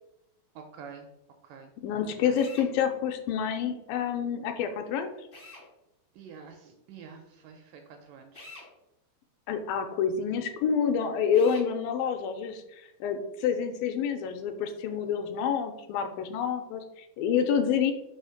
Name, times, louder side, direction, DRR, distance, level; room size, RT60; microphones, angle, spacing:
voice 1, 0.6-1.1 1.4-1.7 2.3-2.4 6.2-8.5, right 6 dB, 80° right, 4 dB, 2.0 m, -47 dB
voice 2, 1.8-5.3 9.5-17.9, left 7 dB, 80° left, 7 dB, 2.2 m, -28 dB
Drill, 2.3-2.7 5.3-5.7 8.3-8.7 11.3-11.7, left 2 dB, 60° left, 0.8 m, -46 dB
5.4 x 3.2 x 5.6 m, 0.87 s
omnidirectional pair, 4.4 m